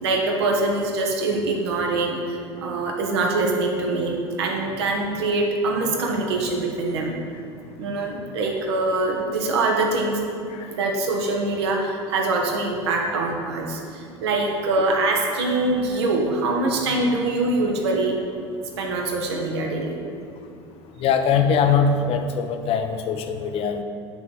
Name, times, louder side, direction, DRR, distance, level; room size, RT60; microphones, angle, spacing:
voice 1, 0.0-7.2 7.8-10.2 10.7-18.2 18.8-20.0, right 2 dB, 65° right, 0 dB, 1.0 m, -24 dB
voice 2, 21.0-23.8, left 6 dB, 40° left, 7 dB, 0.6 m, -21 dB
6.0 x 3.9 x 6.2 m, 2.4 s
figure-of-eight pair, 70°, 15 cm